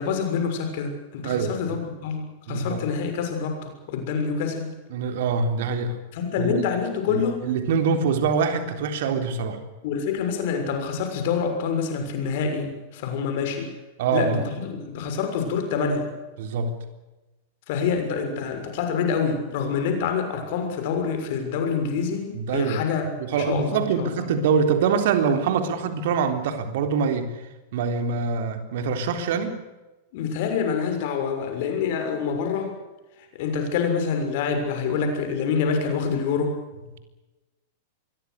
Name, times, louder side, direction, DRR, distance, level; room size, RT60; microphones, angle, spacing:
voice 1, 0.0-4.7 6.1-7.4 9.8-13.7 14.1-16.1 17.7-24.3 30.1-32.7 33.3-36.6, left 6 dB, 55° left, 6 dB, 6.6 m, -26 dB
voice 2, 1.2-1.6 2.5-2.8 4.9-6.0 6.4-6.6 7.1-9.6 14.0-14.5 16.4-16.7 22.3-22.8 23.2-27.4 27.7-29.6, right 5 dB, 55° right, 7 dB, 3.8 m, -24 dB
26.0 x 22.5 x 6.7 m, 1.1 s
figure-of-eight pair, 95°, 0 cm